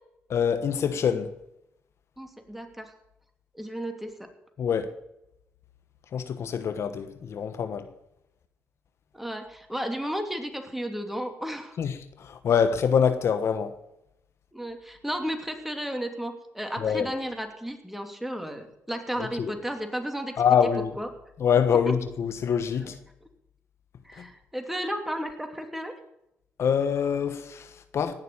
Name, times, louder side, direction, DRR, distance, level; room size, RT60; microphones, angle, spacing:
voice 1, 0.3-1.3 4.6-4.9 6.1-7.9 11.8-13.7 16.8-17.1 19.4-19.5 20.4-20.9 21.4-23.0 24.2-24.3 26.6-28.1, left 7 dB, 65° left, 1.2 m, -25 dB
voice 2, 2.2-2.9 3.5-4.3 9.1-11.8 14.5-20.4 21.0-21.1 21.9-22.0 22.8-22.9 24.0-25.9, equal, 5° right, 2.8 m, -33 dB
18.0 x 6.7 x 8.7 m
supercardioid pair, 60°, 5 cm